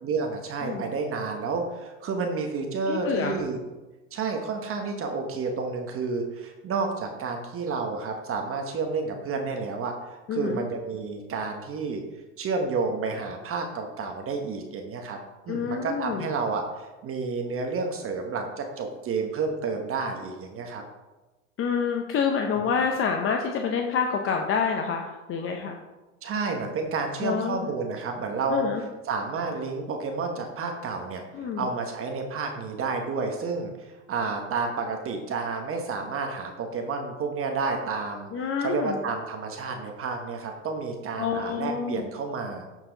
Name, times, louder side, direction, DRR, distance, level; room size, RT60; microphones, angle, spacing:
voice 1, 0.0-3.6 4.1-9.9 10.3-12.0 12.4-15.2 15.5-20.8 26.2-28.7 29.1-38.3 38.6-42.6, right 4 dB, 35° right, 3 dB, 1.2 m, -30 dB
voice 2, 2.9-3.4 10.3-10.6 15.5-16.3 21.6-25.8 27.2-27.7 28.5-28.8 31.3-31.7 38.3-39.0 41.2-42.0, left 6 dB, 35° left, 3 dB, 0.8 m, -27 dB
11.0 x 4.6 x 4.0 m, 1.1 s
hypercardioid pair, 95°, 38 cm